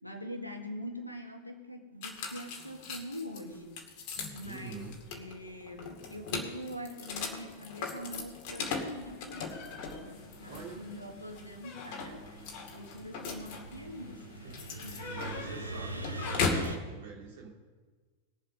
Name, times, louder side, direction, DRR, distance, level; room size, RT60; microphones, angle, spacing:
voice 1, 0.0-3.8 4.3-9.6 9.9-14.5 14.8-15.1, equal, 90° left, 4 dB, 1.7 m, -44 dB
sound 1, 2.0-16.8, left 4 dB, 45° left, 2.3 m, -39 dB
sound 2, 3.5-3.6 4.2-5.9 6.2-7.5 7.9-16.8, right 2 dB, 85° right, 1.2 m, -45 dB
voice 2, 4.4-5.0 10.5-10.8 14.4-14.6 15.1-17.5, right 4 dB, 55° right, -1 dB, 3.3 m, -46 dB
20.0 x 7.6 x 5.2 m, 1.4 s
figure-of-eight pair, 90°, 0 cm